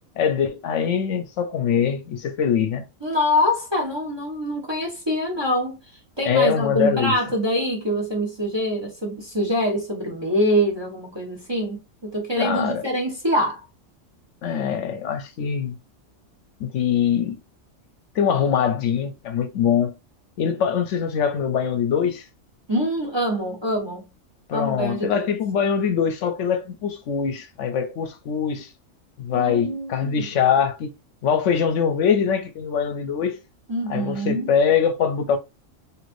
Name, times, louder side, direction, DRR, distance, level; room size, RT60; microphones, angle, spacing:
voice 1, 0.2-2.9 6.2-7.2 12.4-12.8 14.4-15.8 16.6-17.4 18.2-19.9 20.4-22.3 24.5-28.7 29.2-30.9 31.2-33.4 33.9-35.4, left 7 dB, 70° left, 0.9 m, -23 dB
voice 2, 3.0-5.8 6.2-13.7 22.7-24.1 24.5-25.3 29.3-30.2 33.7-34.5, equal, 25° right, 0.8 m, -25 dB
3.1 x 3.0 x 2.5 m
omnidirectional pair, 1.3 m